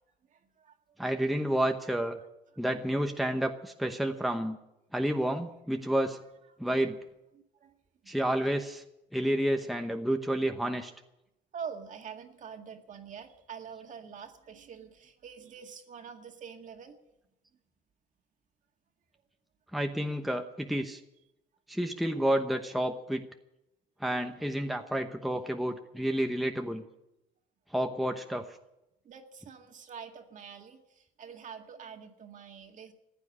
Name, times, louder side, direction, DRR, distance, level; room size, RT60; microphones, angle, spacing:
voice 1, 0.3-0.7 6.5-6.6 7.3-7.7 8.0-8.2 11.5-17.0 29.0-32.9, right 7 dB, 50° right, 4 dB, 2.0 m, -45 dB
voice 2, 1.0-2.2 2.6-4.6 4.9-6.2 6.6-7.0 8.1-8.8 9.1-10.9 19.7-21.0 21.7-23.2 24.0-26.8 27.7-28.4, right 1 dB, ahead, 5 dB, 0.9 m, -30 dB
15.0 x 9.1 x 9.8 m, 0.90 s
cardioid pair, 110°, 17 cm